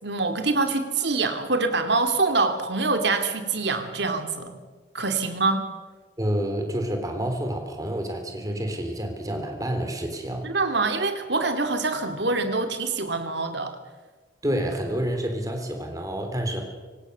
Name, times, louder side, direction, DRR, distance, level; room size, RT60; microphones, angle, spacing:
voice 1, 0.0-4.5 4.9-5.6 10.4-13.7, right 3 dB, 60° right, 7 dB, 2.6 m, -25 dB
voice 2, 6.2-10.5 14.4-16.6, right 1 dB, 20° right, 4 dB, 3.6 m, -28 dB
25.0 x 18.0 x 6.9 m, 1.3 s
head